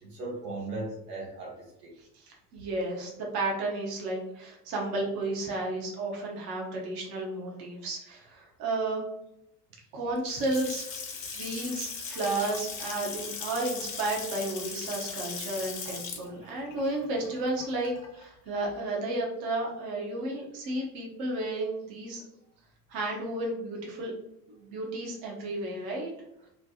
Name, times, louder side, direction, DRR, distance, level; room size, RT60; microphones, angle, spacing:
voice 1, 0.0-2.0 16.3-16.4, right 2 dB, 75° right, -4 dB, 1.1 m, -38 dB
voice 2, 2.0-9.0 9.9-10.9 11.3-22.2 22.9-24.1 24.5-26.1, right 2 dB, 50° right, -1 dB, 1.0 m, -32 dB
Water tap faucet / Sink (filling or washing) / Splash splatter, 10.2-18.2, left 5 dB, 35° left, 0.9 m, -39 dB
3.2 x 2.3 x 2.7 m, 0.81 s
figure-of-eight pair, 65°, 48 cm